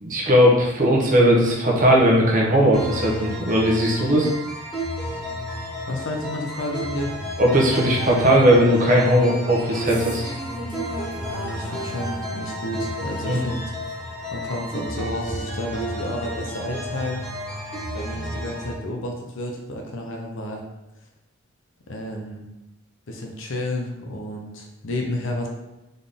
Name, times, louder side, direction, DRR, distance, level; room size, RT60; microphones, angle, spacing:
voice 1, 0.0-4.3 7.4-10.3 13.3-13.4, equal, 35° right, -3 dB, 0.9 m, -18 dB
sound 1, 2.7-18.7, equal, 5° left, 1.5 m, -32 dB
voice 2, 5.9-7.1 11.3-13.6 14.3-17.2 17.9-20.6 21.9-22.5 23.1-25.5, left 1 dB, 60° left, 1 dB, 0.7 m, -31 dB
sound 2, 9.6-14.1, right 1 dB, 20° right, 1.3 m, -39 dB
3.9 x 3.7 x 3.6 m, 0.99 s
head